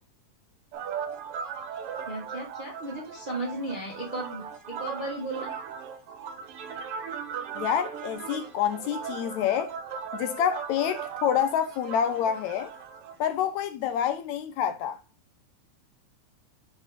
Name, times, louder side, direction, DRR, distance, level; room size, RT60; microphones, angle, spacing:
sound 1, 0.7-13.2, right 7 dB, 65° right, 1.5 m, -38 dB
voice 1, 2.1-5.5, right 2 dB, 25° right, 1.0 m, -35 dB
voice 2, 7.5-9.7 10.1-12.7 13.2-15.0, left 9 dB, 80° left, 1.8 m, -27 dB
6.6 x 4.9 x 3.6 m
omnidirectional pair, 3.5 m